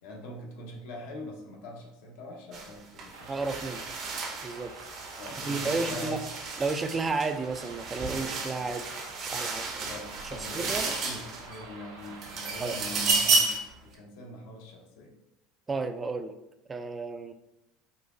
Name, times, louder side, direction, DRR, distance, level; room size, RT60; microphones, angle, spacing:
voice 1, 0.0-3.7 5.2-6.2 9.8-13.5 13.8-15.2, left 1 dB, 75° left, 1 dB, 0.8 m, -43 dB
sound 1, 2.5-2.7 3.0-11.6 12.0-13.7, right 3 dB, 50° right, 0.8 m, -32 dB
sound 2, 3.1-13.1, right 3 dB, 85° right, 0.7 m, -47 dB
voice 2, 3.3-3.8 4.4-4.7 5.4-6.2 6.6-8.9 9.2-9.7 10.2-10.9 12.6-12.7 15.7-16.3 16.7-17.3, right 3 dB, 25° right, 8 dB, 0.3 m, -32 dB
3.9 x 2.7 x 2.6 m, 0.87 s
hypercardioid pair, 85°, 0 cm